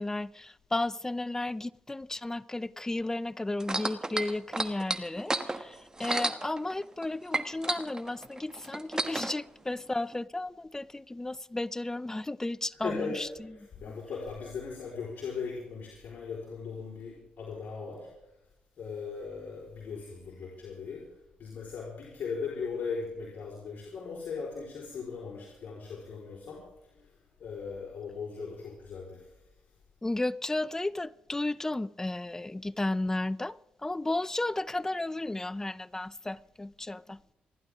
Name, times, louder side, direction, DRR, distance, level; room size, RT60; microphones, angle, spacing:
voice 1, 0.0-13.5 30.0-37.2, left 2 dB, 15° left, 0.5 m, -33 dB
sound 1, 3.6-7.0 7.3-9.3 10.1-10.2, right 2 dB, 20° right, 1.3 m, -32 dB
voice 2, 12.7-18.1 18.8-21.1 21.4-26.6 26.9-27.1 27.4-29.2, left 5 dB, 65° left, 4.5 m, -38 dB
27.5 x 11.5 x 3.7 m
cardioid pair, 80°, 3 cm